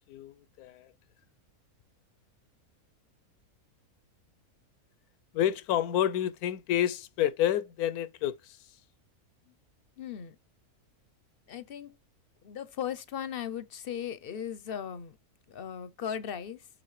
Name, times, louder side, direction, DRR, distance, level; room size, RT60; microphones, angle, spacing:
voice 1, 0.1-0.9 5.3-8.6, left 11 dB, 90° left, 1.1 m, -29 dB
voice 2, 10.0-10.4 11.5-12.0 12.4-15.2 15.5-16.7, left 8 dB, 55° left, 0.6 m, -37 dB
8.8 x 6.2 x 3.1 m
omnidirectional pair, 1.5 m